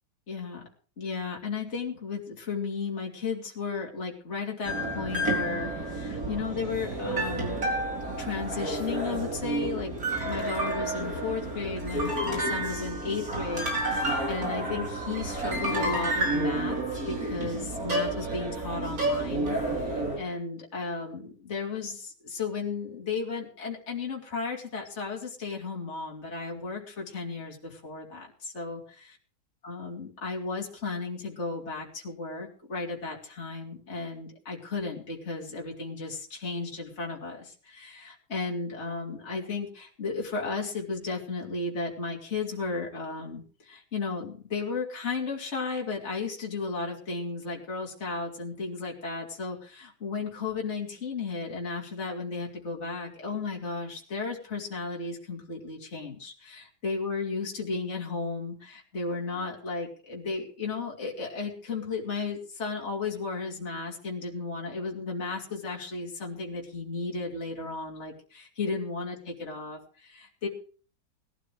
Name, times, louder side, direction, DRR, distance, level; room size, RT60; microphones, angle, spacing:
voice 1, 0.3-0.6 1.0-7.7 8.1-28.8 29.6-70.5, left 4 dB, 30° left, -1 dB, 3.0 m, -34 dB
sound 1, 4.6-20.2, right 1 dB, 45° right, 4.4 m, -30 dB
20.5 x 12.5 x 3.3 m, 0.41 s
omnidirectional pair, 2.2 m